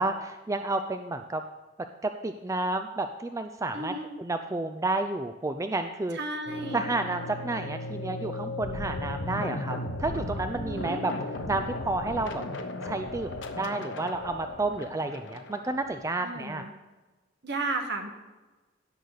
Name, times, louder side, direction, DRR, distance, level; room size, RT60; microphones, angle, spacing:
voice 1, 0.0-1.4 2.0-6.2 6.7-11.1 11.5-12.4 12.8-16.7, right 2 dB, 15° right, 7 dB, 0.4 m, -31 dB
voice 2, 3.7-4.1 6.1-6.8 10.5-11.1 16.2-16.7 17.4-18.1, right 2 dB, 60° right, 4 dB, 1.4 m, -34 dB
sound 1, 6.5-16.1, left 1 dB, 75° left, 1.0 m, -36 dB
17.0 x 6.5 x 4.0 m, 1.2 s
head